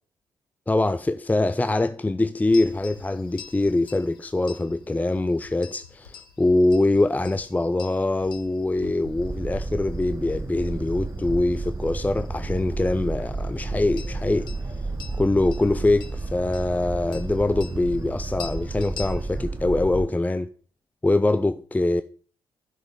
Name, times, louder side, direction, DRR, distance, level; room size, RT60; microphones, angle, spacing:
voice 1, 0.7-14.5 15.2-20.5 21.0-22.0, left 2 dB, 15° left, 0.6 m, -23 dB
sound 1, 2.5-19.4, left 7 dB, 90° left, 1.0 m, -47 dB
Boat Water vehicle, 9.0-20.1, right 3 dB, 25° right, 0.9 m, -32 dB
11.0 x 6.4 x 5.5 m
hypercardioid pair, 40°, 12 cm